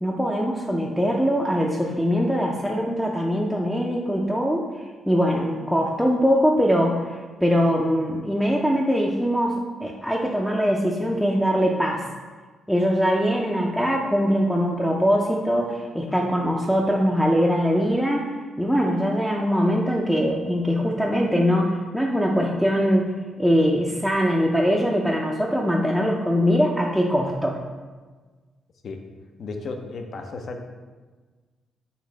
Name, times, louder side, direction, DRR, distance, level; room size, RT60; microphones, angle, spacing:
voice 1, 0.0-4.7 5.1-12.0 12.7-18.3 18.6-23.1 23.4-27.6, equal, ahead, -2 dB, 0.4 m, -22 dB
voice 2, 29.4-30.7, left 3 dB, 55° left, 4 dB, 0.5 m, -34 dB
4.0 x 2.6 x 4.4 m, 1.4 s
cardioid pair, 90°, 0 cm